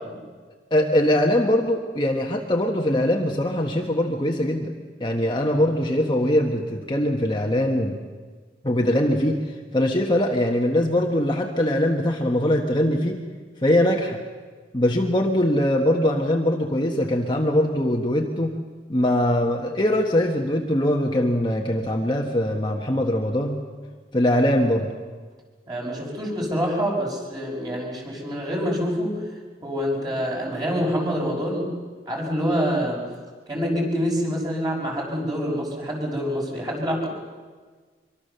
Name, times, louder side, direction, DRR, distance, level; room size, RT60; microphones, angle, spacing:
voice 1, 0.7-4.7 5.0-8.0 8.6-9.4 9.7-13.2 13.6-14.2 14.7-18.6 18.9-23.6 24.1-24.9, left 1 dB, 25° left, 1 dB, 1.5 m, -22 dB
voice 2, 25.7-29.2 29.6-31.8 32.1-33.0 33.5-37.1, equal, 25° right, -1 dB, 6.1 m, -26 dB
25.0 x 23.5 x 6.9 m, 1.5 s
head